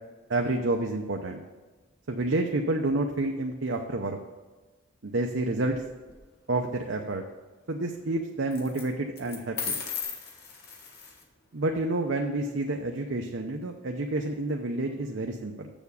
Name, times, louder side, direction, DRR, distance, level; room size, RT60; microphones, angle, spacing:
voice 1, 0.3-1.4 2.1-4.2 5.0-5.8 6.5-7.2 7.7-9.7 11.5-15.7, right 2 dB, 65° right, 2 dB, 0.7 m, -29 dB
sound 1, 5.7-6.2 8.5-8.8 9.2-11.2, left 6 dB, 50° left, 1.3 m, -36 dB
7.1 x 7.1 x 6.8 m, 1.2 s
head